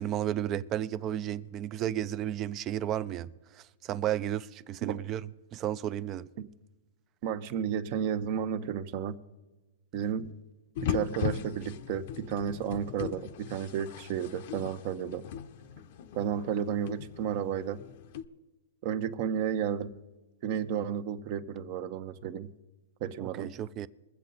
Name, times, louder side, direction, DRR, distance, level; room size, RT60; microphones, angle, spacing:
voice 1, 0.0-3.3 3.5-6.3 23.2-23.9, right 11 dB, 30° right, 0.4 m, -33 dB
voice 2, 7.2-9.2 9.9-10.3 10.8-15.2 16.1-17.8 18.8-19.9 20.4-22.5 23.0-23.5, right 8 dB, 45° right, 0.8 m, -32 dB
sound 1, 10.8-18.3, left 9 dB, 55° left, 0.7 m, -38 dB
22.5 x 7.6 x 4.1 m
hypercardioid pair, 140°, 0 cm